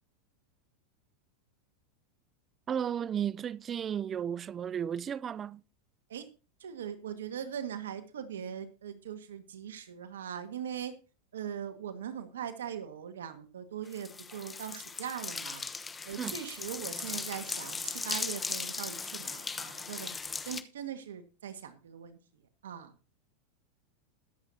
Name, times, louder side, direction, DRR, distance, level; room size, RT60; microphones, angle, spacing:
voice 1, 2.7-5.6 16.2-16.4, right 8 dB, 30° right, 0.4 m, -34 dB
voice 2, 6.6-11.0 11.3-15.7 16.1-22.2 22.6-22.9, right 8 dB, 90° right, 1.7 m, -40 dB
sound 1, 13.9-20.6, left 4 dB, 15° left, 1.0 m, -38 dB
21.5 x 8.0 x 2.8 m
hypercardioid pair, 115°, 0 cm